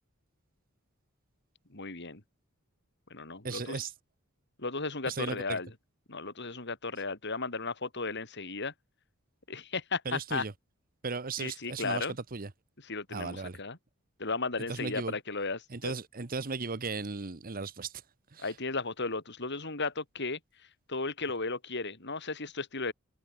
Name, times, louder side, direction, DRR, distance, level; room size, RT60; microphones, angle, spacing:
voice 1, 1.7-2.2 3.1-3.8 4.6-5.7 6.1-8.7 9.5-10.4 11.4-12.1 12.8-13.8 14.2-15.9 18.4-20.4 20.9-22.9, left 3 dB, 55° left, 4.7 m, -35 dB
voice 2, 3.4-3.9 5.1-5.6 10.0-10.5 11.0-12.5 13.1-13.6 14.7-15.1 15.7-17.9 18.3-18.5, right 4 dB, 45° right, 1.1 m, -36 dB
head